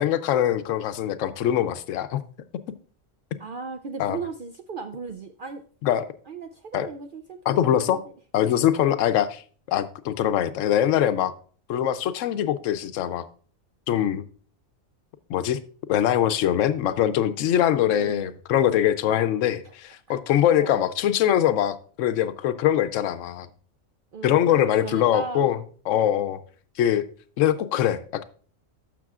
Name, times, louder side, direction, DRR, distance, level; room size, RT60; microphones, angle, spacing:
voice 1, 0.0-2.2 4.0-4.2 5.8-6.1 6.7-6.9 7.5-8.0 8.3-9.4 9.7-11.3 11.7-13.3 13.9-14.2 15.3-15.6 15.9-23.5 24.2-25.6 25.9-26.4 26.8-27.1 27.4-28.2, left 11 dB, 70° left, 0.9 m, -23 dB
voice 2, 3.4-5.6 6.3-8.0 17.9-18.3 19.6-19.7 20.1-20.2 20.6-20.8 24.1-25.5, right 4 dB, 65° right, 0.5 m, -36 dB
12.0 x 6.7 x 2.4 m
omnidirectional pair, 1.4 m